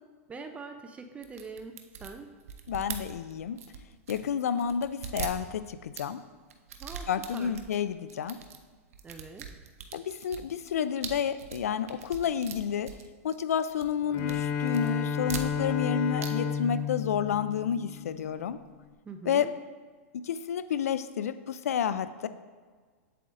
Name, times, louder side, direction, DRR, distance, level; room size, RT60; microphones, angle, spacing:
voice 1, 0.3-1.7 2.0-2.3 6.8-7.5 9.0-9.5 19.1-19.5, right 4 dB, 15° right, 6 dB, 0.5 m, -43 dB
sound 1, 1.2-4.3 4.6-6.1 6.5-7.8 8.1-8.6 8.9-13.5 13.8-14.4 14.7-15.9 16.2-16.3 16.6-16.7, right 7 dB, 75° right, 0.7 m, -41 dB
voice 2, 2.7-3.6 4.1-6.2 7.1-8.4 9.9-12.9 13.2-18.6 19.3-19.5 20.2-22.3, left 8 dB, 85° left, 13 dB, 0.4 m, -30 dB
Bowed string instrument, 14.1-18.4, left 7 dB, 40° left, 0.7 m, -32 dB
8.1 x 7.6 x 2.5 m, 1.5 s
hypercardioid pair, 125°, 8 cm